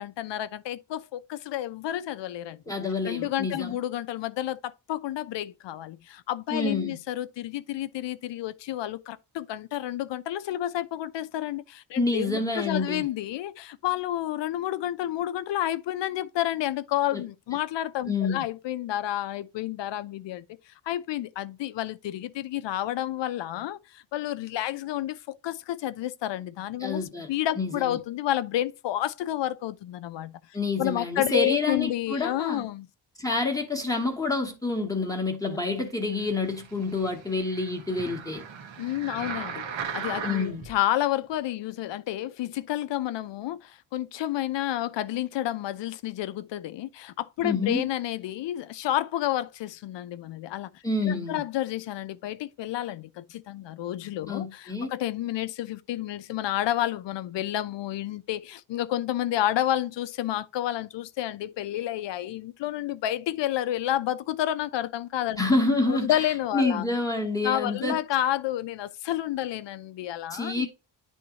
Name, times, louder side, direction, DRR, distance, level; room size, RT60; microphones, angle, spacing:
voice 1, 0.0-2.6 3.0-20.4 20.9-30.4 30.8-32.9 38.8-39.7 39.9-65.4 65.9-66.8 67.4-70.7, left 13 dB, 70° left, 0.7 m, -30 dB
voice 2, 2.7-3.8 6.5-7.0 12.0-13.1 17.1-17.2 18.1-18.4 26.8-27.3 27.6-28.0 30.5-32.7 33.2-38.4 40.2-40.6 47.4-47.8 50.8-51.4 54.3-54.9 65.4-66.2 66.5-68.0 70.3-70.7, left 3 dB, 10° left, 1.0 m, -28 dB
sound 1, 36.1-40.7 41.3-41.4, right 7 dB, 90° right, 1.4 m, -38 dB
10.0 x 3.6 x 2.9 m
wide cardioid pair, 175°, 44 cm